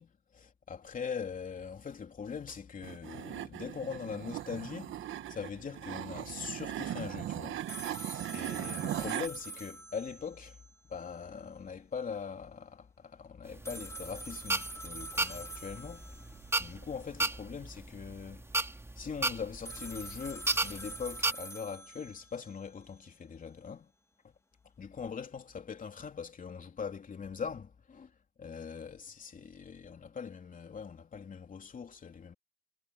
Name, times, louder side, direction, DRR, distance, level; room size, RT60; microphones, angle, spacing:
voice 1, 0.0-7.9 8.3-10.6 10.9-16.1 16.6-18.5 19.0-23.9 24.2-24.3 24.8-28.1 28.4-32.3, left 6 dB, 40° left, 3.3 m, -42 dB
sound 1, 2.8-9.3, right 12 dB, 80° right, 1.2 m, -39 dB
sound 2, 7.7-10.7 11.0-11.1 13.6-16.7 19.7-22.7, right 2 dB, 15° left, 2.3 m, -46 dB
sound 3, 13.5-21.3, right 2 dB, 15° right, 2.1 m, -34 dB
cardioid pair, 90°, 20 cm